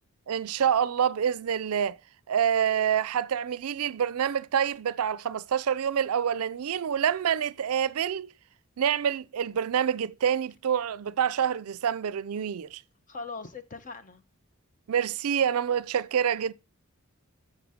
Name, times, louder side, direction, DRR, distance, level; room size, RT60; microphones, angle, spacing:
voice 1, 0.3-2.0 2.3-8.3 8.8-12.8 14.9-16.5, right 8 dB, 85° right, 0.4 m, -27 dB
voice 2, 13.1-14.2, left 4 dB, 35° left, 1.0 m, -40 dB
10.0 x 6.6 x 5.1 m
head